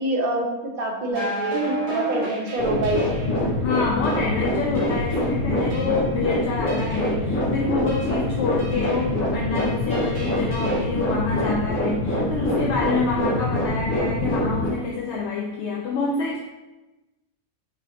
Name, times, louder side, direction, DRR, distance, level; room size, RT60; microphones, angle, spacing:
voice 1, 0.0-3.3, right 2 dB, 50° right, 0 dB, 0.8 m, -26 dB
sound 1, 1.1-3.4 4.0-4.2 4.7-5.3 5.7-6.2 6.7-7.2 7.9-8.1 8.6-9.1 9.6-10.8, right 1 dB, 25° right, 1.5 m, -33 dB
sound 2, 2.6-14.7, left 1 dB, 40° left, 1.2 m, -24 dB
voice 2, 3.6-16.4, left 4 dB, 65° left, -2 dB, 0.7 m, -27 dB
6.2 x 3.0 x 2.8 m, 1.1 s
omnidirectional pair, 1.5 m